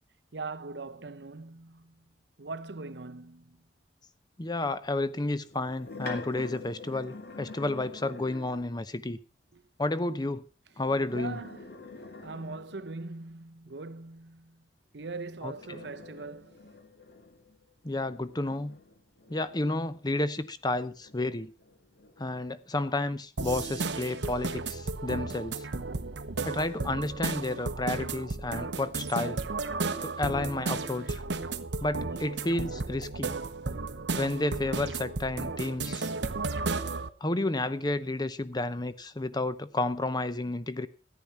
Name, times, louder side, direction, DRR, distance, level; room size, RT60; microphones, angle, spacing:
voice 1, 0.3-2.1 2.4-3.6 9.5-9.6 11.1-11.9 12.2-14.7 14.9-16.6, right 3 dB, 75° right, 0.8 m, -41 dB
voice 2, 4.4-9.2 9.8-10.4 10.8-11.4 15.4-15.5 17.8-18.8 19.3-21.5 22.2-25.6 26.4-29.4 30.0-31.2 31.8-33.3 34.2-36.1 37.2-40.9, left 2 dB, 25° left, 0.8 m, -31 dB
sound 1, 5.4-8.8 10.7-13.0 15.0-20.2 20.7-22.5, left 3 dB, 65° left, 2.0 m, -46 dB
sound 2, 23.4-37.1, right 3 dB, 90° right, 1.0 m, -34 dB
14.0 x 10.0 x 5.8 m
head